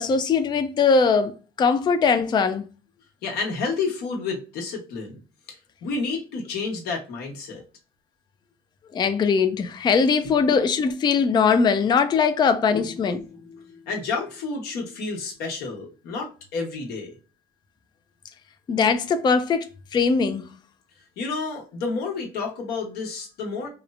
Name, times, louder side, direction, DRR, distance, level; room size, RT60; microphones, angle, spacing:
voice 1, 0.0-2.7 8.9-13.2 18.7-20.5, left 5 dB, 25° left, 0.3 m, -21 dB
voice 2, 3.2-5.2 5.5-7.6 10.2-10.3 12.7-17.1 21.2-23.7, left 4 dB, 75° left, 1.0 m, -30 dB
2.9 x 2.0 x 2.3 m
cardioid pair, 115°, 16 cm